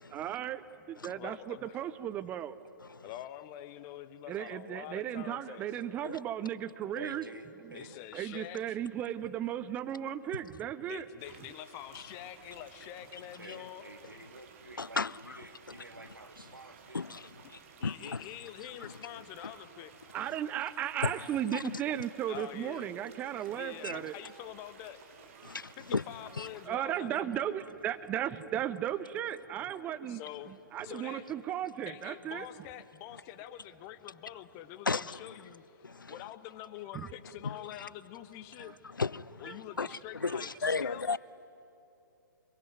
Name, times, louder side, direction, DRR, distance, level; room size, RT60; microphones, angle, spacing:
voice 1, 0.1-2.6 4.3-7.2 7.6-7.8 8.1-11.1 19.6-19.7 20.1-24.1 25.4-25.6 26.6-32.5 36.9-37.1 38.6-38.8 39.5-39.6 39.9-40.4, right 10 dB, 15° right, 0.6 m, -36 dB
voice 2, 1.1-1.8 3.0-5.6 7.7-8.6 10.8-13.8 17.8-19.9 22.3-22.9 23.5-25.0 25.4-25.5 25.8-27.4 30.1-30.5 30.8-31.2 31.9-38.8 39.4-41.2, left 13 dB, 25° left, 1.1 m, -46 dB
voice 3, 6.9-8.0 13.4-17.2, right 2 dB, 85° right, 1.8 m, -49 dB
sound 1, 11.2-26.7, right 6 dB, 40° right, 2.3 m, -56 dB
voice 4, 14.8-15.4 16.9-17.2 17.8-18.2 18.8-18.9 21.0-21.1 21.5-21.6 23.8-24.0 25.4-26.0 26.4-26.5 34.9-35.2 35.8-36.2 37.4-37.6 39.0-39.4 39.8-41.2, left 4 dB, 75° left, 0.5 m, -34 dB
25.0 x 23.0 x 9.5 m
figure-of-eight pair, 125°, 11 cm